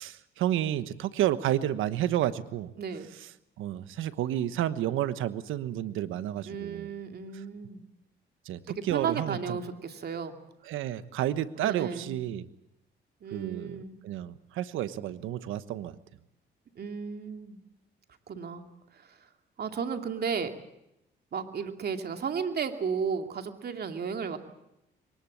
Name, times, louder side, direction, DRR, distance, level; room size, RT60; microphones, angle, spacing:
voice 1, 0.0-2.7 3.6-6.9 8.4-9.6 10.7-12.5 13.3-16.0, right 12 dB, 90° right, 13 dB, 1.2 m, -31 dB
voice 2, 2.8-3.1 6.5-7.8 8.7-10.4 11.6-12.2 13.2-14.0 16.8-17.6 18.3-18.7 18.9-19.2 19.6-20.5 21.3-24.4, right 6 dB, 55° right, 6 dB, 2.6 m, -34 dB
23.0 x 19.5 x 8.5 m, 0.86 s
cardioid pair, 90°, 20 cm